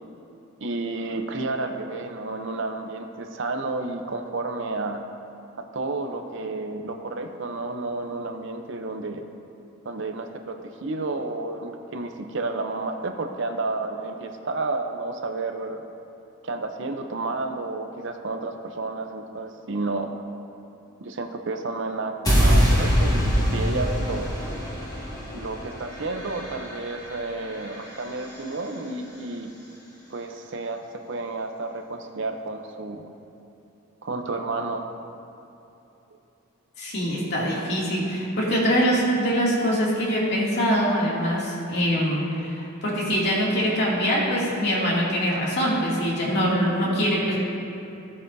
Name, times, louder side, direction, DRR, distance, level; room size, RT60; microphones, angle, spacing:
voice 1, 0.6-5.0 5.7-9.2 9.8-15.8 16.4-20.1 21.0-24.3 25.3-29.5 30.1-33.1 34.0-34.9, right 3 dB, 60° right, 5 dB, 0.7 m, -31 dB
sound 1, 22.3-28.4, equal, 20° left, 1.9 m, -24 dB
voice 2, 36.8-47.4, equal, 55° left, -6 dB, 2.5 m, -23 dB
16.0 x 8.5 x 2.7 m, 2.9 s
head